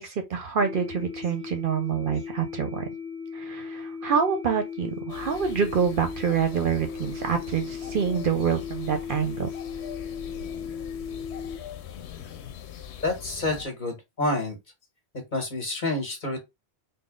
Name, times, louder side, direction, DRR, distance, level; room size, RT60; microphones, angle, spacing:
voice 1, 0.0-2.9 3.3-9.5, right 7 dB, 60° right, 0.7 m, -26 dB
sound 1, 0.6-11.6, left 6 dB, 5° right, 0.8 m, -37 dB
sound 2, 5.1-13.7, left 8 dB, 90° left, 0.9 m, -42 dB
voice 2, 13.0-14.6 15.3-16.4, left 2 dB, 45° left, 1.6 m, -28 dB
3.8 x 2.0 x 3.6 m
omnidirectional pair, 1.1 m